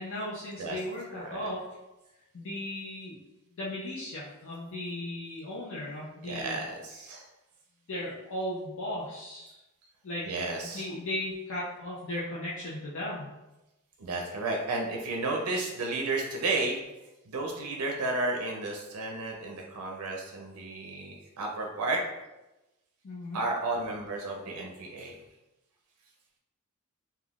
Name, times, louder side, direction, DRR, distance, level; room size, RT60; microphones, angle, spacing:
voice 1, 0.0-1.6 2.3-3.2 3.6-6.6 7.9-9.6 10.0-10.3 10.6-13.3 23.0-23.4, left 1 dB, 60° left, -7 dB, 0.5 m, -36 dB
voice 2, 1.2-1.5 6.2-7.3 10.3-10.8 14.0-16.8 17.3-22.0 23.3-25.2, right 2 dB, 85° right, 1 dB, 0.5 m, -32 dB
3.4 x 2.3 x 2.3 m, 0.99 s
head